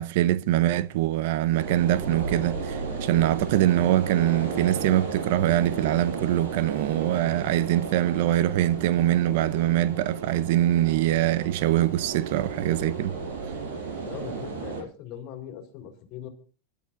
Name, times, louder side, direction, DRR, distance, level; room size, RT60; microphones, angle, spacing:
voice 1, 0.0-13.1, right 13 dB, 60° right, 0.6 m, -23 dB
sound 1, 1.5-14.8, right 5 dB, 80° right, 5.7 m, -34 dB
voice 2, 14.1-16.3, left 9 dB, 40° left, 4.2 m, -40 dB
27.0 x 12.0 x 2.5 m
supercardioid pair, 150°, 0 cm